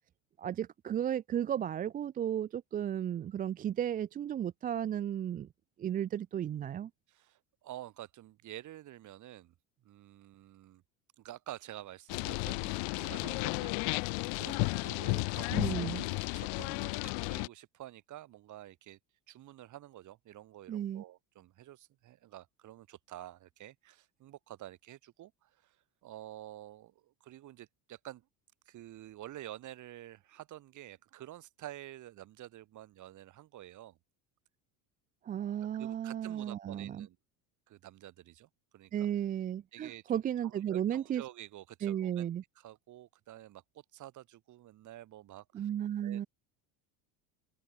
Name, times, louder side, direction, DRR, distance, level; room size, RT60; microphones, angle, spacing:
voice 1, 0.4-5.5 5.8-6.9 15.5-16.1 20.7-21.0 35.2-37.1 38.9-41.2 41.8-42.4 45.5-46.3, right 10 dB, 20° right, 0.5 m, -34 dB
voice 2, 7.1-9.5 9.8-10.8 11.2-15.5 15.8-19.0 19.3-25.8 26.0-28.3 28.7-34.0 35.8-37.2 37.7-39.1 39.7-42.3 42.6-45.7 46.0-46.2, right 14 dB, 40° right, 6.9 m, -49 dB
sound 1, 12.1-17.5, left 40 dB or more, 55° left, 0.6 m, -33 dB
cardioid pair, 155°, 46 cm